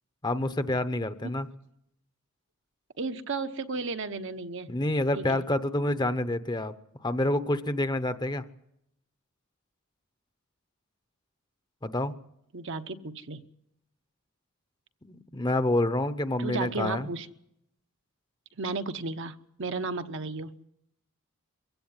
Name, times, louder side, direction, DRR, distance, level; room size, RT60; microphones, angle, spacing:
voice 1, 0.2-1.5 4.7-6.7 7.0-8.4 11.8-12.1 15.0-17.1, left 1 dB, 20° left, 11 dB, 0.8 m, -28 dB
voice 2, 3.0-4.7 5.1-5.4 12.5-13.4 16.4-17.3 18.6-20.6, right 3 dB, 55° right, 8 dB, 1.0 m, -34 dB
23.0 x 16.5 x 9.6 m, 0.78 s
head